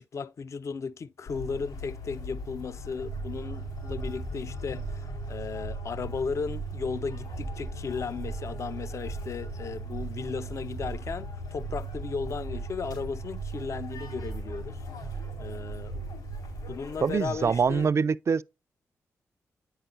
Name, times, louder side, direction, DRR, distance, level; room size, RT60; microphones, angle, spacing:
voice 1, 0.0-14.8 15.4-16.0 16.7-17.9, left 5 dB, 50° left, 0.4 m, -35 dB
sound 1, 1.3-17.9, left 3 dB, 85° left, 4.0 m, -42 dB
sound 2, 3.0-16.7, right 5 dB, 90° right, 0.7 m, -38 dB
voice 2, 17.0-18.4, right 6 dB, 45° right, 0.4 m, -24 dB
8.8 x 5.6 x 2.5 m
hypercardioid pair, 40°, 7 cm